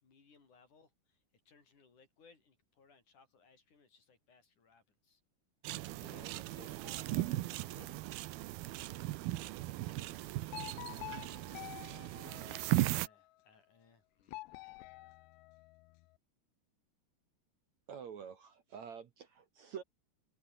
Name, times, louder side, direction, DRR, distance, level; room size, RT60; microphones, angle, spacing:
voice 1, 0.0-5.2 9.5-10.5 11.1-11.2 11.4-14.9, left 5 dB, 45° left, 5.6 m, -67 dB
sound 1, 5.6-13.1, right 17 dB, 75° right, 2.5 m, -37 dB
voice 2, 6.0-8.0, left 4 dB, 65° left, 9.6 m, -57 dB
sound 2, 10.5-13.2 14.3-16.1, left 20 dB, 85° left, 2.9 m, -49 dB
voice 3, 17.9-19.8, right 7 dB, 55° right, 2.1 m, -47 dB
open air
omnidirectional pair, 4.9 m